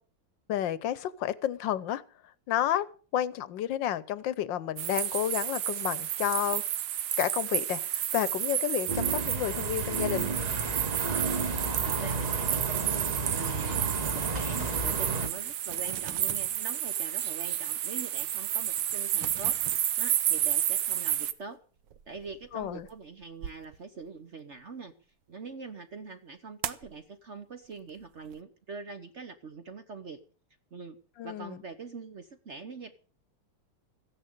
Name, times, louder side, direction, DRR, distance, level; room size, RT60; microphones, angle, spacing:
voice 1, 0.5-2.0 2.5-2.9 3.1-6.6 7.2-10.3 22.5-22.9 31.2-31.6, left 11 dB, 65° left, 18 dB, 1.4 m, -31 dB
sound 1, 4.8-21.3, right 11 dB, 85° right, 1.8 m, -31 dB
sound 2, 8.9-15.3, right 3 dB, 25° right, 1.1 m, -32 dB
voice 2, 11.8-21.6 22.1-24.9 25.3-30.2 30.7-31.0 31.2-32.9, right 4 dB, 45° right, 9 dB, 0.9 m, -44 dB
sound 3, 15.5-16.7 17.2-17.3 17.9-18.0 18.2-18.3 18.8-20.6 21.0-24.6 26.6-27.0 27.6-28.4, right 10 dB, 65° right, 1.4 m, -44 dB
15.0 x 10.5 x 6.7 m, 0.40 s
omnidirectional pair, 2.3 m